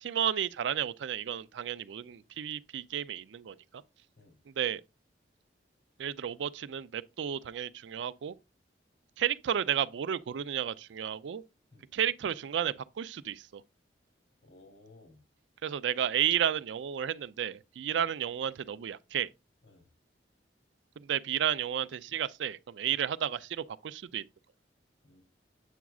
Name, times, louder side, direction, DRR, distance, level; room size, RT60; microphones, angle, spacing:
voice 1, 0.0-3.8 4.5-4.8 6.0-8.4 9.2-11.4 11.9-13.6 15.6-19.3 21.0-24.3, right 9 dB, 80° right, 0.4 m, -32 dB
voice 2, 14.4-15.2 17.9-18.0 19.6-19.8 22.9-23.0 25.0-25.2, left 2 dB, 80° left, 2.6 m, -57 dB
8.0 x 6.0 x 2.3 m
head